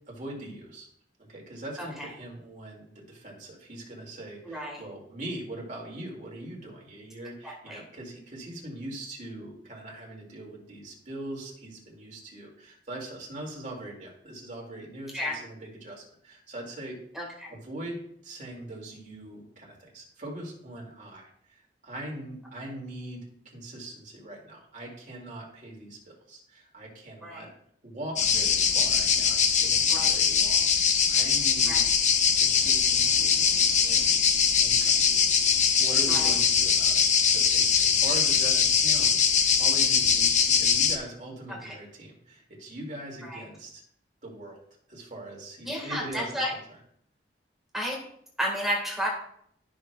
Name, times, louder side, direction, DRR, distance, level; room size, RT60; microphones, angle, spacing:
voice 1, 0.1-0.9 1.2-17.0 17.5-18.0 18.2-27.5 27.8-31.9 32.4-33.5 33.8-34.2 34.6-34.9 35.8-43.8 44.2-44.6 44.9-46.8, right 1 dB, 45° right, -1 dB, 2.3 m, -41 dB
voice 2, 1.8-2.1 4.5-4.8 7.4-7.8 15.1-15.4 17.1-17.5 27.2-27.4 29.9-30.1 31.7-31.8 36.1-36.3 41.5-41.7 43.2-43.4 45.6-46.5 47.7-48.0 48.4-49.1, equal, ahead, -2 dB, 1.6 m, -32 dB
sound 1, 28.2-41.0, left 6 dB, 45° left, 0.7 m, -22 dB
13.0 x 6.3 x 2.3 m, 0.68 s
head